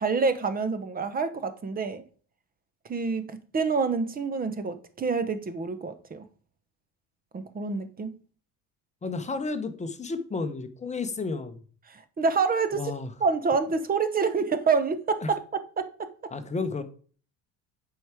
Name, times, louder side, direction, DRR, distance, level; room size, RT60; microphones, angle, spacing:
voice 1, 0.0-2.0 2.9-6.2 7.3-8.2 11.9-12.8 13.2-16.1, right 4 dB, 25° right, 0.8 m, -27 dB
voice 2, 9.0-11.6 12.7-13.1 15.2-15.3 16.3-16.8, left 4 dB, 20° left, 0.9 m, -32 dB
7.8 x 4.8 x 4.9 m
cardioid pair, 125°, 39 cm